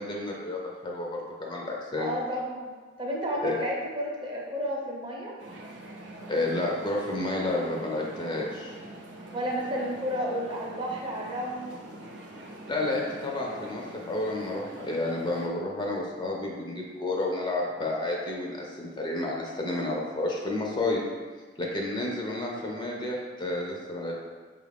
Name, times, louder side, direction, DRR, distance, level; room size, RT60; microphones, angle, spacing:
voice 1, 0.0-2.2 3.4-3.5 6.3-8.7 12.7-21.0 21.6-24.3, left 2 dB, 25° left, -2 dB, 0.5 m, -31 dB
voice 2, 2.0-5.3 9.3-11.7 21.6-21.7, equal, 25° right, -2 dB, 0.6 m, -32 dB
sound 1, 5.4-15.5, right 1 dB, 70° right, 0.6 m, -44 dB
4.8 x 2.4 x 3.4 m, 1.4 s
head